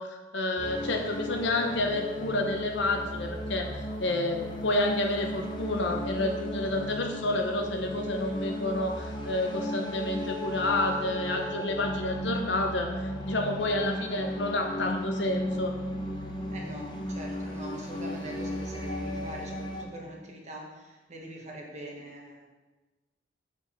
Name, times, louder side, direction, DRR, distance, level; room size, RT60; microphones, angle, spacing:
voice 1, 0.0-15.7, left 2 dB, 70° left, 3 dB, 1.0 m, -29 dB
sound 1, 0.6-19.8, equal, 25° left, 0.9 m, -35 dB
voice 2, 16.5-22.5, right 1 dB, 35° right, -1 dB, 1.3 m, -42 dB
7.1 x 6.8 x 3.7 m, 1.2 s
head